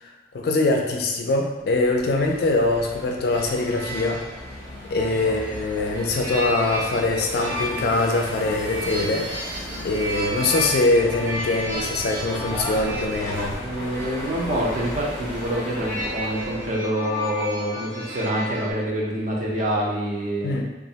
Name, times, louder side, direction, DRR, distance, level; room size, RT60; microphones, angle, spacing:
voice 1, 0.0-4.2 4.9-13.6 20.4-20.6, left 2 dB, 55° left, 1 dB, 0.3 m, -23 dB
sound 1, 1.6-16.7, equal, 20° left, 0.7 m, -36 dB
sound 2, 2.2-18.7, equal, 90° right, 1.1 m, -34 dB
voice 2, 13.5-20.6, right 1 dB, 45° right, -4 dB, 0.5 m, -26 dB
2.4 x 2.0 x 2.7 m, 1.1 s
head